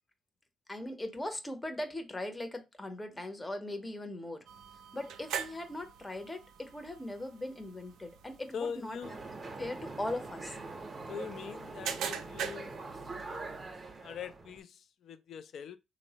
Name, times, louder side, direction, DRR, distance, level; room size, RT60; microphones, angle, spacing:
voice 1, 0.7-4.5 4.9-9.0 9.6-10.6, left 1 dB, 15° left, 0.6 m, -39 dB
sound 1, 4.5-13.8, right 7 dB, 85° right, 0.3 m, -44 dB
voice 2, 8.5-9.1 11.1-12.7 13.1-13.6 14.0-15.8, left 7 dB, 65° left, 0.3 m, -42 dB
sound 2, 9.0-14.6, right 3 dB, 30° right, 0.6 m, -44 dB
3.3 x 2.0 x 2.7 m
cardioid pair, 90°, 0 cm